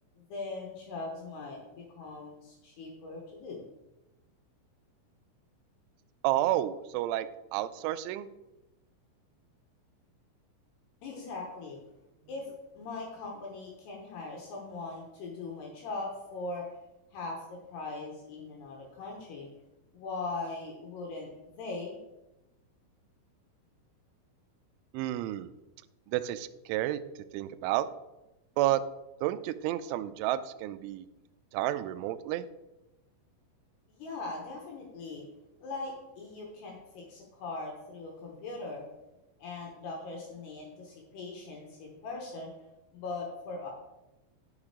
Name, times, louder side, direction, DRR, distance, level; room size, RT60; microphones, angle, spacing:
voice 1, 0.2-3.6 11.0-11.8 12.3-12.5 12.8-16.7 17.1-19.5 19.9-22.0 33.9-35.2 35.6-38.9 39.4-42.5 42.9-43.7, left 3 dB, 70° left, 0 dB, 2.9 m, -40 dB
voice 2, 6.2-8.3 24.9-25.5 26.1-27.0 27.3-27.9 28.6-28.8 29.2-31.1 31.5-32.5, right 14 dB, 90° right, 11 dB, 2.7 m, -30 dB
8.8 x 6.6 x 4.9 m, 0.97 s
omnidirectional pair, 6.0 m